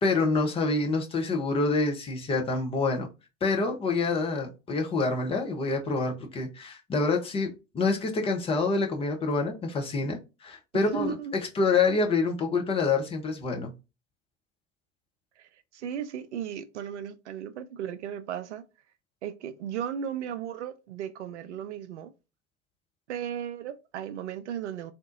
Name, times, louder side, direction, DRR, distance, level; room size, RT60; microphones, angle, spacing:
voice 1, 0.0-3.1 3.4-11.1 11.5-13.7, left 3 dB, 15° left, 0.6 m, -27 dB
voice 2, 10.7-11.3 15.4-18.6 19.2-22.1 23.1-24.9, right 9 dB, 65° right, 0.5 m, -35 dB
3.6 x 2.6 x 2.4 m
figure-of-eight pair, 85°, 38 cm